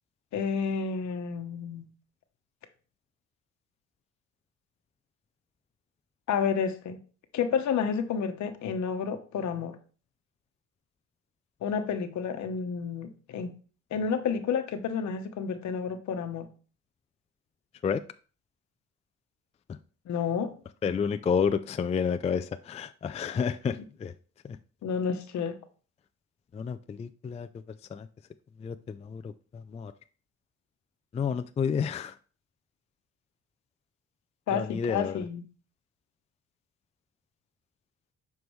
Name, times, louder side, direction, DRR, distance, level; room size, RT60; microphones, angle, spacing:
voice 1, 0.3-1.9 6.3-7.0 7.3-9.7 11.6-13.5 13.9-16.5 20.1-20.5 24.8-25.6 34.5-35.4, left 6 dB, 70° left, 1.0 m, -30 dB
voice 2, 20.8-24.1 24.4-24.6 26.5-27.5 27.9-28.1 28.6-29.9 31.1-32.2 34.5-35.2, left 6 dB, 20° left, 0.3 m, -30 dB
7.1 x 4.7 x 3.1 m
cardioid pair, 90°, 30 cm